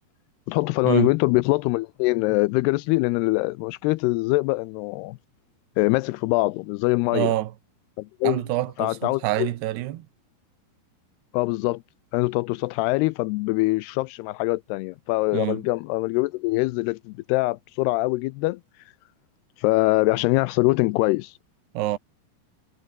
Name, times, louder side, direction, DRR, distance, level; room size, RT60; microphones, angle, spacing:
voice 1, 0.5-5.2 5.8-7.3 8.0-8.4 8.8-9.5 11.3-11.8 12.1-18.6 19.6-21.3, left 22 dB, 85° left, 2.5 m, -23 dB
voice 2, 7.1-7.5 8.2-10.1 15.3-15.6 21.7-22.0, right 15 dB, 80° right, 3.2 m, -26 dB
omnidirectional pair, 4.8 m